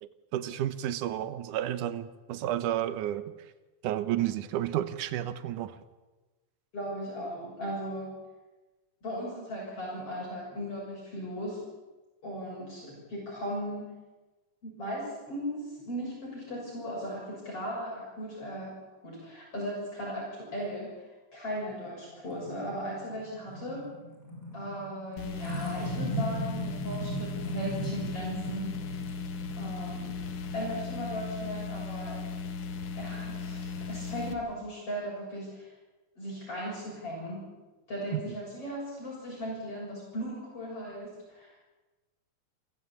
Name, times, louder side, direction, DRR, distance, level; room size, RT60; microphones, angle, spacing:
voice 1, 0.0-3.5 3.8-5.8 38.1-38.3, right 12 dB, 80° right, 12 dB, 2.5 m, -32 dB
voice 2, 6.7-8.1 9.0-11.7 12.2-13.9 14.6-18.7 19.0-23.8 24.5-29.0 29.6-30.2 30.5-32.2 33.0-35.7 36.2-37.4 37.9-41.6, equal, 45° left, -4 dB, 7.6 m, -37 dB
sound 1, 21.7-31.8, right 1 dB, 25° right, 6.9 m, -39 dB
sound 2, 25.2-34.3, left 5 dB, 85° left, 3.5 m, -37 dB
28.5 x 16.0 x 8.6 m, 1.2 s
omnidirectional pair, 3.7 m